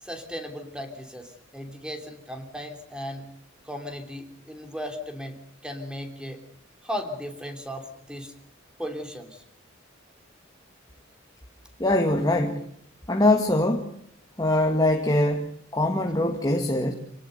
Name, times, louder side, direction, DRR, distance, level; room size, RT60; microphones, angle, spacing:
voice 1, 0.0-3.3 3.6-5.4 5.6-6.4 6.8-8.3 8.8-9.4, equal, 5° right, 5 dB, 3.4 m, -36 dB
voice 2, 11.8-12.7 13.1-14.0 14.4-16.9, left 1 dB, 20° left, 4 dB, 1.8 m, -23 dB
27.5 x 18.5 x 6.7 m, 0.68 s
head